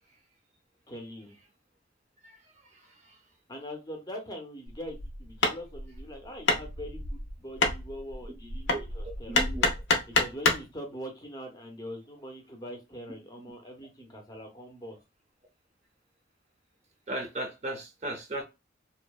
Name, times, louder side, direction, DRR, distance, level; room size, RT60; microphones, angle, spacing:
voice 1, 0.9-1.4 3.5-9.5 10.0-15.0, equal, 20° left, 0.5 m, -42 dB
Hammer, 4.7-10.7, left 3 dB, 85° left, 0.6 m, -29 dB
voice 2, 9.3-9.7 17.1-18.4, right 1 dB, 35° right, 0.5 m, -35 dB
2.7 x 2.0 x 2.2 m
head